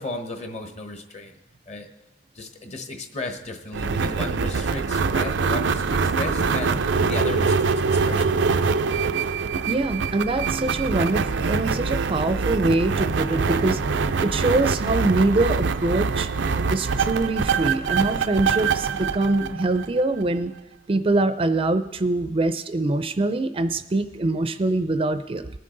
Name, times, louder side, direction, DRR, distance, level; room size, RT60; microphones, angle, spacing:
voice 1, 0.0-1.3 1.7-1.9 2.3-6.8 7.1-7.7 8.0-8.3, left 2 dB, 40° left, 6 dB, 1.2 m, -34 dB
sound 1, 3.7-20.2, right 5 dB, 90° right, 0.5 m, -24 dB
voice 2, 9.7-13.8 14.2-16.3 16.7-20.5 20.9-25.5, right 2 dB, 30° right, 10 dB, 0.5 m, -24 dB
20.0 x 7.5 x 3.9 m, 1.0 s
head